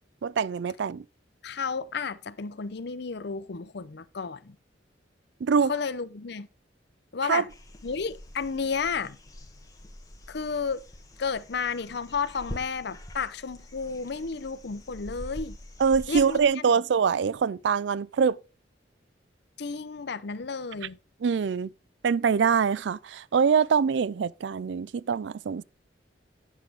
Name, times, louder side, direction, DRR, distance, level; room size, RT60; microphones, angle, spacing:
voice 1, 0.2-1.0 5.4-5.7 7.2-7.4 15.8-18.4 21.2-21.7 22.0-25.6, right 6 dB, 70° right, 0.4 m, -24 dB
voice 2, 1.4-4.6 5.7-6.5 7.1-7.5 7.8-9.2 10.3-10.8 11.2-15.6 16.1-16.4 19.6-21.0, left 5 dB, 65° left, 0.7 m, -32 dB
sound 1, 7.5-16.5, left 1 dB, 20° left, 1.3 m, -45 dB
9.3 x 8.3 x 3.5 m
head